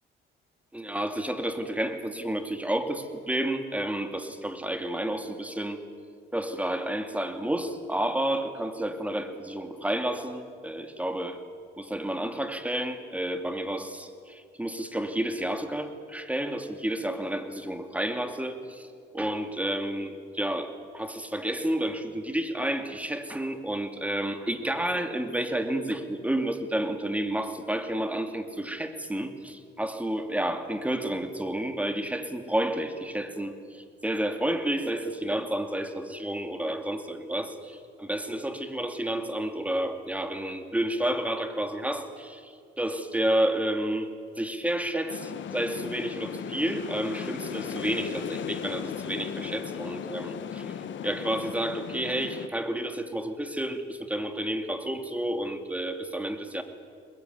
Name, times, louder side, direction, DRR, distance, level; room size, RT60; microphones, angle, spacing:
voice 1, 0.7-5.8 6.3-11.4 11.8-18.9 19.1-44.1 44.4-50.7 51.0-56.6, right 1 dB, 5° right, 7 dB, 2.5 m, -30 dB
sound 1, 45.1-52.5, left 8 dB, 70° left, 1.5 m, -36 dB
22.0 x 20.5 x 9.4 m, 2.2 s
cardioid pair, 90°, 20 cm